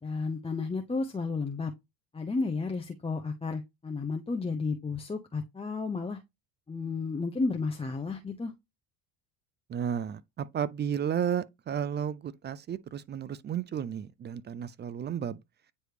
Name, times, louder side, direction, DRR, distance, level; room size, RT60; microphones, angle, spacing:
voice 1, 0.0-1.7 2.1-6.2 6.7-8.5, left 4 dB, 10° left, 0.7 m, -32 dB
voice 2, 9.7-15.4, right 8 dB, 25° right, 0.4 m, -33 dB
9.3 x 3.1 x 3.3 m
hypercardioid pair, 80°, 47 cm